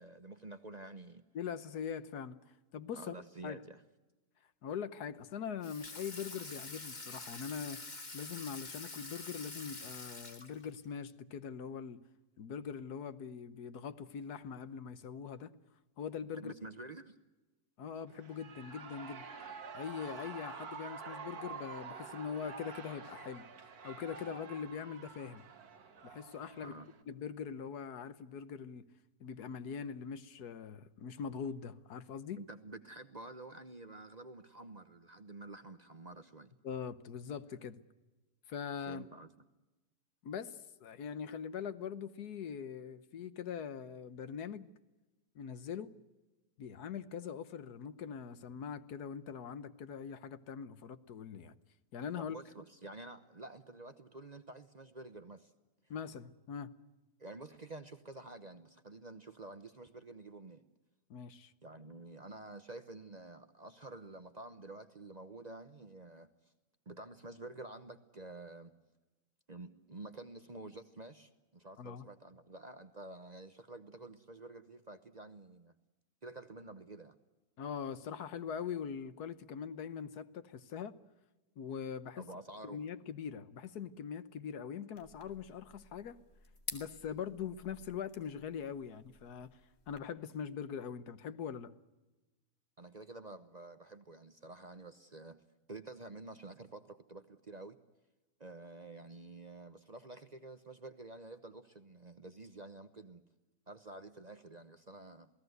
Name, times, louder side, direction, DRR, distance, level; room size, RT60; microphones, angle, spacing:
voice 1, 0.0-1.2 3.0-3.8 16.3-17.2 26.6-26.9 32.4-36.5 38.8-39.3 52.2-55.5 57.2-60.6 61.6-66.3 66.9-68.7 69.5-75.7 76.2-77.2 82.2-82.8 92.8-95.4 95.7-97.8 98.4-103.2 103.7-105.3, right 2 dB, 35° right, 9 dB, 0.9 m, -49 dB
voice 2, 1.3-2.4 2.7-3.1 3.4-3.6 4.6-7.8 8.1-12.0 12.4-15.5 16.0-16.5 17.8-19.3 19.7-23.5 23.8-25.5 26.0-26.7 27.1-28.9 29.2-32.4 36.6-37.8 38.5-39.1 40.2-44.7 45.3-45.9 46.6-51.6 51.9-52.4 55.9-56.7 61.1-61.5 71.8-72.0 77.6-80.9 81.6-82.2 82.6-86.2 86.7-89.6 89.9-91.7, left 7 dB, 80° left, 13 dB, 1.5 m, -42 dB
Water tap faucet / Sink (filling or washing), 5.6-10.9, left 3 dB, 30° left, 1.7 m, -46 dB
Shout / Cheering, 18.1-27.0, right 5 dB, 70° right, 2.0 m, -48 dB
sound 1, 84.9-90.0, left 4 dB, 60° left, 2.8 m, -51 dB
28.0 x 18.5 x 8.0 m, 1.1 s
omnidirectional pair, 1.7 m